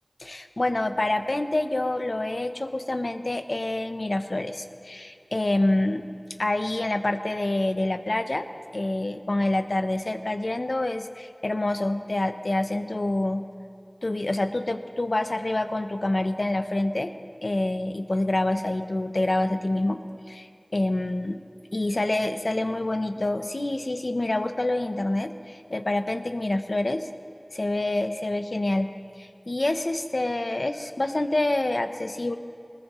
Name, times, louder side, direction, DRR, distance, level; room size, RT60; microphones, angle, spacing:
voice 1, 0.2-6.0 6.4-8.5 8.7-13.4 14.0-17.1 17.4-20.0 20.3-21.4 21.7-27.1 27.5-28.9 29.2-32.4, left 2 dB, 80° left, 8 dB, 0.7 m, -27 dB
21.5 x 20.0 x 3.1 m, 2.5 s
wide cardioid pair, 40°, 0 cm